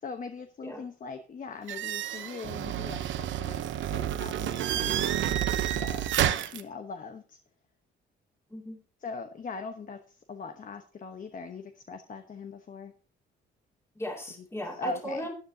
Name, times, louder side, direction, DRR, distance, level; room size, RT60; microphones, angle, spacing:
voice 1, 0.0-6.2 6.5-7.4 9.0-12.9 14.4-15.2, left 4 dB, 40° left, 7 dB, 1.0 m, -41 dB
sound 1, 1.7-6.6, right 11 dB, 75° right, 0.9 m, -29 dB
voice 2, 8.5-8.8 14.0-15.3, equal, 15° left, 0 dB, 2.7 m, -37 dB
13.5 x 9.6 x 2.8 m, 0.37 s
cardioid pair, 90°, 20 cm